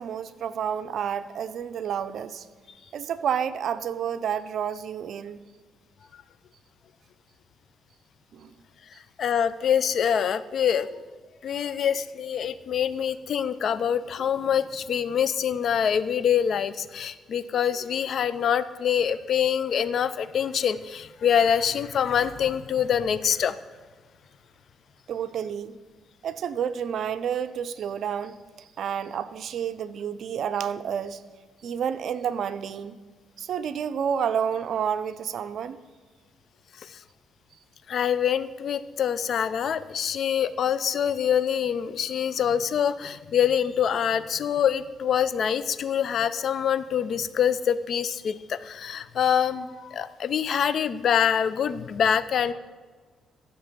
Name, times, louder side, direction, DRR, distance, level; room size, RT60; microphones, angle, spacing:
voice 1, 0.0-2.5 2.9-5.4 8.3-8.5 25.1-25.8 26.2-31.2 31.6-32.9 33.4-35.8, right 8 dB, 65° right, 12 dB, 0.6 m, -30 dB
voice 2, 9.2-11.0 11.4-23.6 36.8-37.0 37.9-52.5, left 8 dB, 60° left, 16 dB, 0.5 m, -25 dB
14.5 x 6.7 x 5.2 m, 1.4 s
cardioid pair, 90°, 0 cm